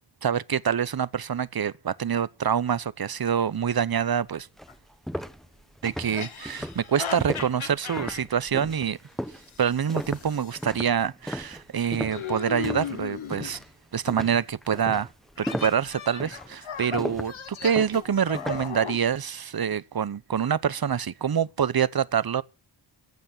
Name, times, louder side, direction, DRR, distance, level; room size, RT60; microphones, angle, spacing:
voice 1, 0.2-4.5 5.8-9.0 9.6-13.6 13.9-15.1 15.4-22.4, right 8 dB, 50° right, 0.8 m, -26 dB
sound 1, 4.1-4.2 4.6-13.0 13.3-13.7 14.1-18.8, equal, ahead, 1.1 m, -36 dB
sound 2, 4.7-4.8 6.0-8.2 9.5-10.6 12.1-13.6 15.4-19.0, left 7 dB, 85° left, 1.3 m, -36 dB
15.0 x 7.0 x 9.5 m
wide cardioid pair, 55°, 47 cm